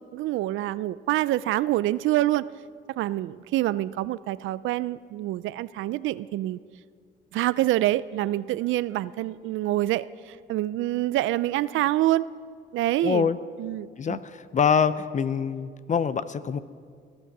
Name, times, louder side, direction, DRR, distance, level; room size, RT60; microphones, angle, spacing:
voice 1, 0.1-2.5 3.0-6.6 7.3-12.3 12.7-13.3 13.6-14.2, right 15 dB, 80° right, 17 dB, 0.4 m, -26 dB
voice 2, 13.0-13.4 14.0-16.6, left 6 dB, 40° left, 14 dB, 0.6 m, -25 dB
19.0 x 11.0 x 6.0 m, 2.1 s
cardioid pair, 90°, 20 cm